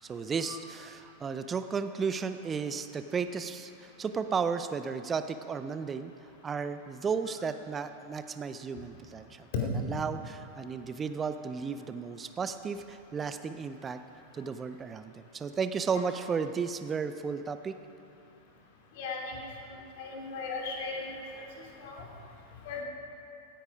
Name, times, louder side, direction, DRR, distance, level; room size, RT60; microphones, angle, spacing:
voice 1, 0.0-6.1 6.4-9.5 9.8-14.0 14.3-17.7, right 5 dB, 20° right, 10 dB, 0.5 m, -34 dB
voice 2, 19.0-19.4 20.0-21.0 21.8-21.9 22.6-22.8, left 4 dB, 50° left, -1 dB, 2.7 m, -37 dB
16.5 x 10.0 x 4.9 m, 2.7 s
figure-of-eight pair, 90°, 0 cm